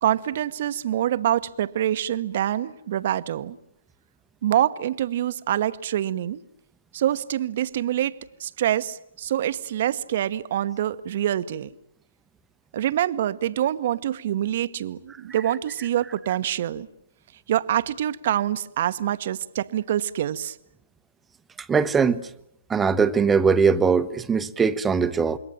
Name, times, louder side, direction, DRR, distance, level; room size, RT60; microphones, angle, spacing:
voice 1, 0.0-3.6 4.4-6.4 6.9-11.7 12.7-16.9 17.5-20.6, right 11 dB, 50° right, 1.1 m, -25 dB
voice 2, 21.7-22.3 22.7-25.4, right 5 dB, 10° right, 1.0 m, -21 dB
27.0 x 23.0 x 9.1 m
figure-of-eight pair, 125°, 0 cm